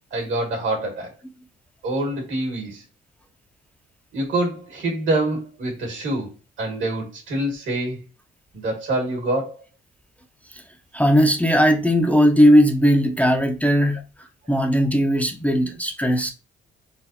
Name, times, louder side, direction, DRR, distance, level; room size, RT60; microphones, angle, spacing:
voice 1, 0.1-1.1 1.8-2.8 4.1-6.3 6.6-8.0 8.5-9.6, right 1 dB, 70° right, 1.9 m, -26 dB
voice 2, 10.9-16.3, equal, 5° left, 0.5 m, -18 dB
4.0 x 2.4 x 2.7 m
cardioid pair, 90°, 20 cm